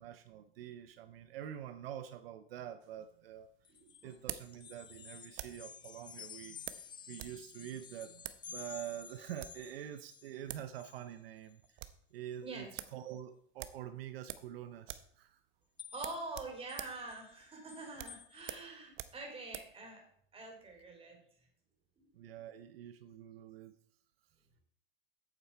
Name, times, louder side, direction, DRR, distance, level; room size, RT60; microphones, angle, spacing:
voice 1, 0.0-3.5 4.0-11.8 12.1-15.4 22.1-23.8, right 10 dB, 80° right, 11 dB, 0.8 m, -46 dB
sound 1, 2.8-5.7 6.7-7.4 7.7-7.8 8.2-8.5 9.2-9.7 10.2-10.3 10.5-10.7 11.0-11.1 11.4-12.0 12.4-12.5 12.8-13.0 13.6-14.6 14.8-15.2 15.4-15.6 16.0-19.8, right 13 dB, 40° right, 0.8 m, -47 dB
sound 2, 3.6-10.4 10.7-11.1 11.5-11.7 12.3-12.4 15.8-16.3 16.7-18.5, left 7 dB, 15° left, 0.4 m, -52 dB
voice 2, 3.8-4.1 12.4-12.7 15.9-20.0 20.3-21.2 22.0-22.1, right 2 dB, 20° right, 2 dB, 3.6 m, -45 dB
8.3 x 8.2 x 4.5 m, 0.63 s
hypercardioid pair, 120°, 29 cm